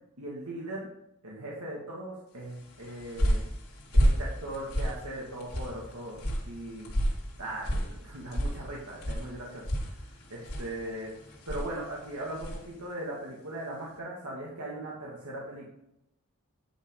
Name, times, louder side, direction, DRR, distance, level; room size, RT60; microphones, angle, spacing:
voice 1, 0.2-0.9 1.2-3.4 3.9-6.2 6.4-6.9 7.4-9.7 10.3-11.2 11.5-15.7, right 1 dB, 85° right, -4 dB, 2.2 m, -39 dB
sound 1, 2.6-12.7, equal, 75° left, 3.2 m, -31 dB
11.0 x 6.1 x 3.9 m, 0.81 s
head